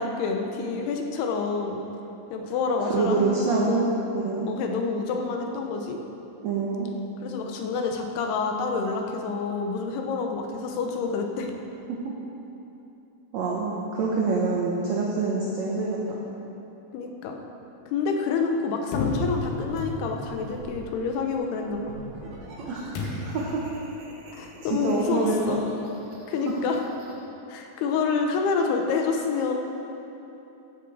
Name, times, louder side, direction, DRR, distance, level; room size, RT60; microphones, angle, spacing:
voice 1, 0.0-1.8 2.3-3.9 4.5-6.0 7.2-11.5 16.9-17.4 17.9-21.8 24.3-25.6 26.3-26.8 27.5-29.5, left 4 dB, 90° left, 3 dB, 3.0 m, -28 dB
voice 2, 2.9-4.5 6.4-6.9 11.9-12.0 13.3-16.2 22.6-23.6 24.7-25.6, right 3 dB, 75° right, -3 dB, 1.6 m, -26 dB
sound 1, 18.9-20.4 23.0-23.5, left 2 dB, 65° left, 2.4 m, -31 dB
sound 2, 19.3-20.9 21.6-27.2, right 1 dB, 60° right, 2.7 m, -44 dB
14.5 x 7.2 x 4.8 m, 3.0 s
omnidirectional pair, 4.5 m